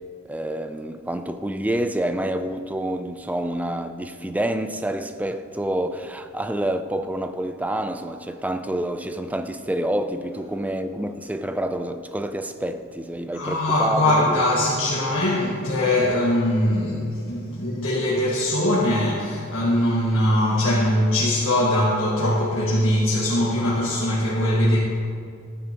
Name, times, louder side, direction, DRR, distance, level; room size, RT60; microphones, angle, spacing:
voice 1, 0.3-14.4, right 1 dB, 5° right, 0.4 m, -28 dB
voice 2, 13.3-24.8, left 1 dB, 70° left, 1.6 m, -21 dB
14.0 x 9.1 x 3.0 m
head